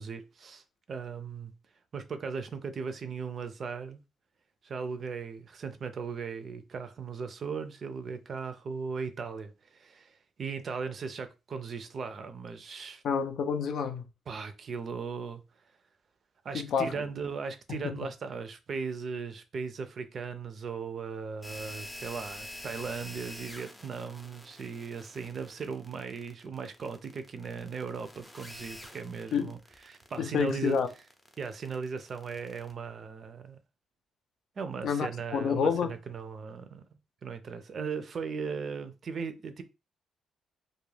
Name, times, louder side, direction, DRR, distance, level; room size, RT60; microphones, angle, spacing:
voice 1, 0.0-1.5 1.9-4.0 4.6-13.0 14.3-15.4 16.4-29.6 29.9-30.8 31.4-33.6 34.6-36.8 37.2-39.6, right 5 dB, 50° right, 0.4 m, -38 dB
voice 2, 13.0-14.1 16.5-17.0 17.7-18.0 29.3-29.5 30.2-30.9 34.8-36.0, left 6 dB, 70° left, 0.4 m, -29 dB
sound 1, 21.4-32.7, left 1 dB, 10° left, 0.5 m, -47 dB
2.4 x 2.1 x 3.2 m
cardioid pair, 90°, 0 cm